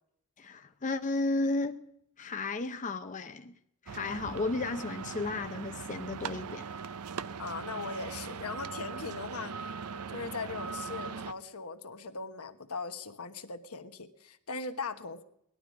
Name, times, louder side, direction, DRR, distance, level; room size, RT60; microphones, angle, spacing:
voice 1, 0.4-1.8 2.2-3.6 3.9-6.6, left 3 dB, 35° left, 7 dB, 0.6 m, -33 dB
sound 1, 3.9-11.3, right 5 dB, 90° right, 0.6 m, -40 dB
voice 2, 7.4-9.6 10.1-15.2, left 4 dB, 80° left, 7 dB, 1.3 m, -39 dB
19.0 x 12.0 x 5.2 m, 0.78 s
head